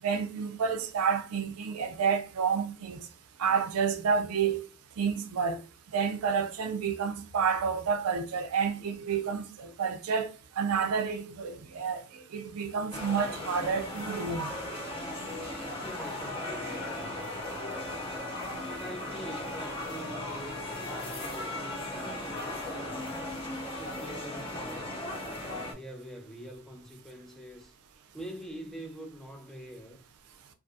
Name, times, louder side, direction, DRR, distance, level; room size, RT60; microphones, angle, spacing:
voice 1, 0.0-3.1 3.4-4.7 5.0-5.6 5.9-10.3 10.6-12.0 12.3-14.5, right 6 dB, 85° right, 0.4 m, -29 dB
sound 1, 12.9-25.7, left 1 dB, 25° left, 0.7 m, -37 dB
voice 2, 15.8-17.7 18.6-23.2 23.8-24.9 25.4-27.7 28.1-30.0, equal, ahead, 0.3 m, -45 dB
2.4 x 2.4 x 2.6 m
head